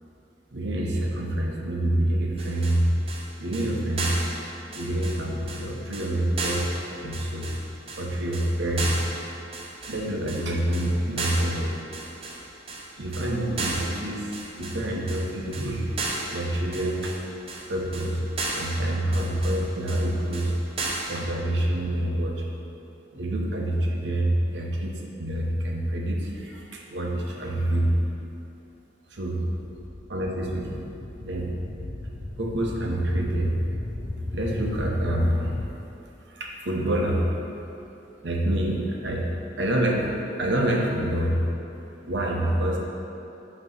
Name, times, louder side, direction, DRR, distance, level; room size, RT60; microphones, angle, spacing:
voice 1, 0.5-2.9 3.4-4.1 4.7-6.7 7.0-7.5 8.0-9.0 9.9-11.7 13.0-15.9 16.3-17.1 17.7-18.2 18.5-20.5 21.1-22.5 23.1-28.0 29.1-29.4 30.1-30.9 31.2-31.5 32.4-33.6 34.3-35.6 36.3-37.4 38.2-39.3 39.6-41.4 42.0-42.8, right 1 dB, 65° right, -1 dB, 0.9 m, -26 dB
sound 1, 2.4-21.3, right 3 dB, 30° right, 0.7 m, -34 dB
sound 2, 29.6-35.7, left 1 dB, 35° left, 0.5 m, -35 dB
8.4 x 3.0 x 5.4 m, 2.8 s
head